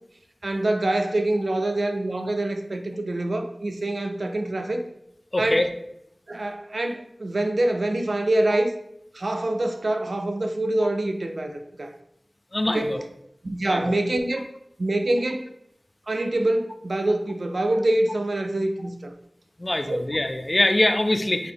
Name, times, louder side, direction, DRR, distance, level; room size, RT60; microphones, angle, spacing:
voice 1, 0.4-4.8 5.4-5.7 6.3-8.7 9.1-11.9 12.7-13.0 13.4-14.5 14.8-15.5 16.1-19.1 19.9-20.0, right 1 dB, 75° right, 6 dB, 0.4 m, -25 dB
voice 2, 5.3-5.7 12.5-13.0 13.6-13.9 19.6-21.5, left 1 dB, 40° left, 7 dB, 0.4 m, -23 dB
4.0 x 2.8 x 3.4 m, 0.78 s
wide cardioid pair, 45°, 0 cm